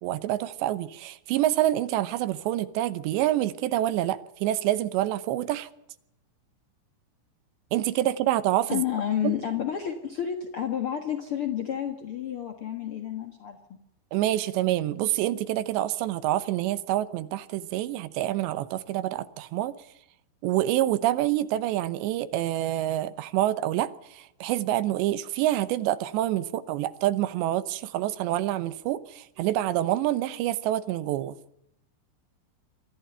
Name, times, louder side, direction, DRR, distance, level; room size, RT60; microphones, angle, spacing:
voice 1, 0.0-5.7 7.7-8.8 9.2-9.4 14.1-19.7 20.4-31.4, right 13 dB, 80° right, 3.0 m, -27 dB
voice 2, 8.7-13.6, left 10 dB, 75° left, 1.2 m, -30 dB
23.5 x 14.5 x 9.1 m
omnidirectional pair, 5.3 m